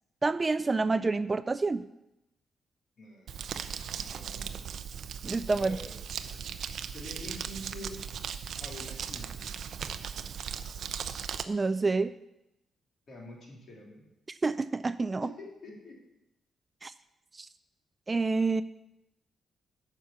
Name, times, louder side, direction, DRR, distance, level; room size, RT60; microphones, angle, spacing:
voice 1, 0.2-1.8 5.2-5.8 11.5-12.1 14.3-15.3 16.8-16.9 17.4-17.5 18.1-18.6, right 3 dB, 25° right, 14 dB, 0.3 m, -28 dB
voice 2, 3.0-4.7 5.5-5.9 6.9-8.0 8.6-9.5 13.1-14.1 15.2-16.0 16.9-17.0, left 1 dB, 55° left, -3 dB, 3.7 m, -46 dB
Crumpling crinkling, 3.3-11.4, right 7 dB, 70° right, 0.6 m, -38 dB
9.3 x 5.8 x 7.5 m, 0.88 s
cardioid pair, 120°, 0 cm